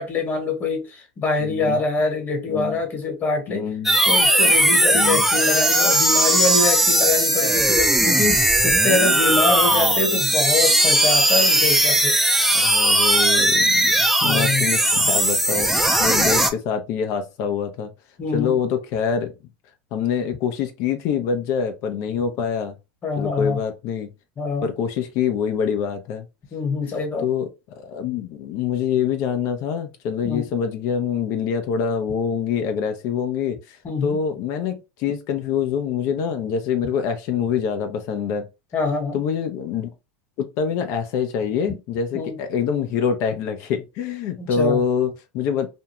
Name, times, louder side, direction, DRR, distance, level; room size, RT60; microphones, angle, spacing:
voice 1, 0.0-3.7 4.0-12.1 14.2-14.7 18.2-18.6 23.0-23.6 24.4-24.7 26.5-27.3 30.2-30.4 33.8-34.2 38.7-39.2 42.1-42.4 44.4-44.8, left 3 dB, 35° left, 1.2 m, -25 dB
voice 2, 1.4-1.8 2.5-2.8 3.5-4.0 4.9-5.3 9.7-10.0 12.5-13.9 14.2-17.9 18.3-19.3 19.9-22.7 23.2-24.1 24.6-26.2 27.2-27.5 27.7-38.5 39.1-39.9 40.4-45.7, left 7 dB, 55° left, 0.6 m, -25 dB
sound 1, 3.8-16.5, right 1 dB, 5° right, 0.5 m, -18 dB
2.6 x 2.3 x 2.9 m
supercardioid pair, 110°, 5 cm